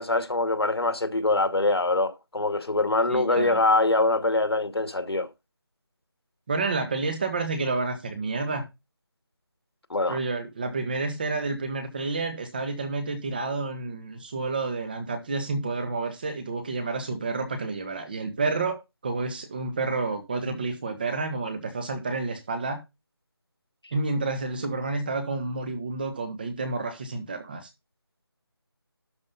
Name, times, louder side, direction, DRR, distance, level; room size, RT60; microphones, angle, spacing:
voice 1, 0.0-5.3 9.9-10.2, left 2 dB, 75° left, 2.3 m, -24 dB
voice 2, 3.1-3.6 6.5-8.6 10.1-22.8 23.9-27.7, right 3 dB, 20° right, 1.6 m, -30 dB
12.0 x 5.3 x 5.4 m
figure-of-eight pair, 170°, 13 cm